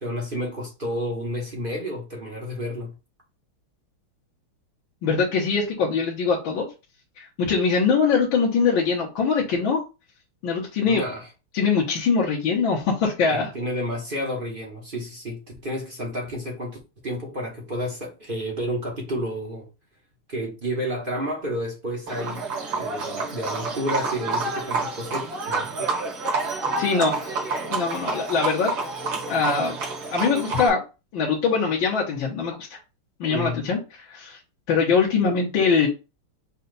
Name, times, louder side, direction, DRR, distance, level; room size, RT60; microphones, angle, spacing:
voice 1, 0.0-2.9 10.8-11.3 13.3-19.7 20.3-22.5 22.7-25.9 33.3-33.6, equal, 35° right, 1.0 m, -31 dB
voice 2, 5.0-6.7 7.4-9.8 10.4-11.0 11.5-13.5 26.8-27.4 27.7-28.7 29.3-29.8 30.1-30.8 31.1-32.8 33.2-33.8 34.1-34.4 34.7-35.9, left 5 dB, 65° left, 1.8 m, -22 dB
Livestock farm animals working animals, 22.1-30.7, right 3 dB, 60° right, 2.2 m, -28 dB
5.6 x 2.4 x 3.9 m
omnidirectional pair, 2.4 m